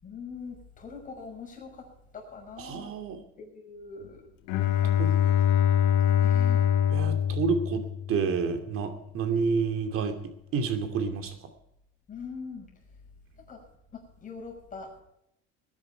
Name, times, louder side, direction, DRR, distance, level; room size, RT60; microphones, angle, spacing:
voice 1, 0.0-1.9 2.1-2.9 3.4-4.2 4.7-5.3 6.0-6.7 12.1-12.7 13.4-13.6 13.9-15.0, left 5 dB, 25° left, 0 dB, 6.2 m, -43 dB
voice 2, 2.6-3.2 5.0-5.1 6.9-10.2 10.5-11.3, right 5 dB, 50° right, 7 dB, 2.6 m, -29 dB
Bowed string instrument, 4.5-8.4, left 10 dB, 80° left, 2.0 m, -24 dB
20.5 x 10.5 x 4.6 m, 0.77 s
cardioid pair, 140°, 29 cm